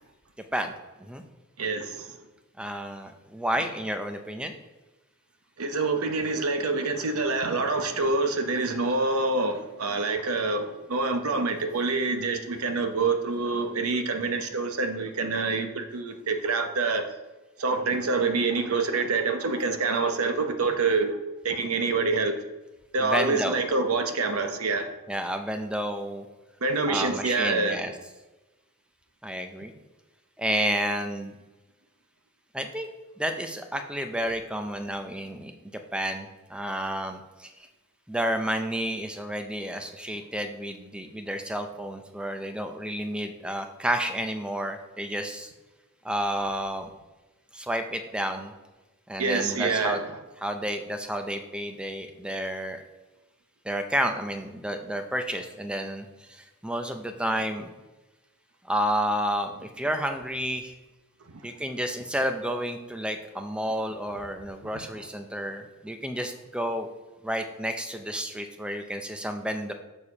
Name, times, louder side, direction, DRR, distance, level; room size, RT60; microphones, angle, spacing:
voice 1, 1.6-1.9 5.6-17.0 17.6-21.1 21.4-22.3 22.9-24.9 26.6-27.8 49.2-50.0, right 3 dB, 90° right, 6 dB, 0.8 m, -26 dB
voice 2, 2.6-4.5 23.0-23.6 25.1-26.3 26.9-28.0 29.2-29.7 30.4-31.4 32.5-32.9 33.2-35.5 35.9-37.7 38.1-45.5 46.0-46.9 47.5-48.5 49.1-50.0 50.4-52.8 53.6-57.7 58.7-60.7 61.4-66.9 67.2-69.7, equal, 5° right, 6 dB, 0.5 m, -31 dB
6.8 x 4.3 x 4.8 m, 1.1 s
head